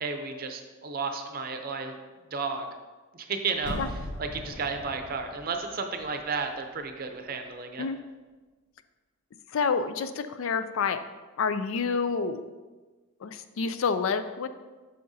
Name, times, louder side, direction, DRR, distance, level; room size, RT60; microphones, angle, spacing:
voice 1, 0.0-1.9 2.3-2.7 3.1-3.8 4.2-7.9, right 4 dB, 45° right, 5 dB, 0.6 m, -33 dB
sound 1, 3.5-6.5 6.8-6.9, equal, 90° left, 1.0 m, -40 dB
voice 2, 9.5-11.0 11.4-12.4 13.2-14.5, left 5 dB, 70° left, 11 dB, 0.4 m, -28 dB
8.5 x 5.6 x 2.7 m, 1.3 s
head